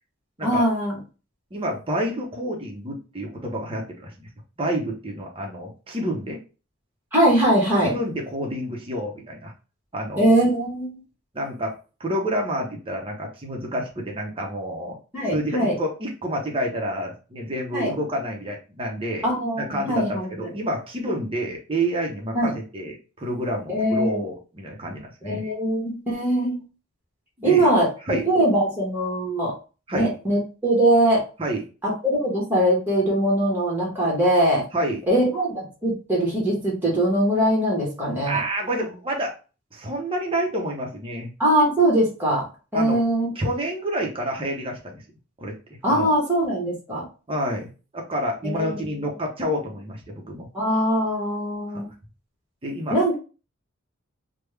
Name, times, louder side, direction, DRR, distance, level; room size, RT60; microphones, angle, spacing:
voice 1, 0.4-1.0 7.1-7.9 10.2-11.0 15.1-15.7 17.7-17.9 19.2-20.5 22.3-22.5 23.7-24.2 25.2-26.6 27.4-29.5 29.9-31.2 31.8-34.6 35.1-38.4 41.4-42.4 42.7-43.3 45.8-47.0 48.4-49.1 50.5-51.9 52.9-53.2, right 1 dB, 10° right, -4 dB, 1.1 m, -21 dB
voice 2, 1.5-4.3 4.6-6.4 7.8-9.5 9.9-10.3 11.3-11.7 12.0-15.0 15.3-19.3 19.6-25.5 27.4-27.7 28.1-28.3 29.9-30.1 31.4-31.6 34.7-35.0 38.2-39.3 39.7-41.3 42.7-43.0 43.3-45.0 45.4-46.1 47.3-50.5 52.6-53.0, right 1 dB, 25° right, 0 dB, 0.8 m, -29 dB
3.4 x 2.2 x 3.2 m, 0.34 s
head